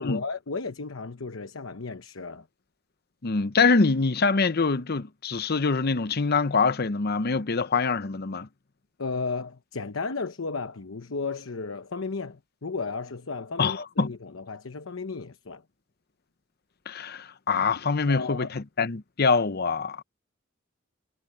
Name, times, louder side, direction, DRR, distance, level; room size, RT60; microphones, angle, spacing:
voice 1, 0.0-2.5 9.0-15.6 18.1-18.5, left 4 dB, 90° left, 0.9 m, -34 dB
voice 2, 3.2-8.5 13.6-14.1 16.9-20.0, left 4 dB, 50° left, 0.8 m, -24 dB
head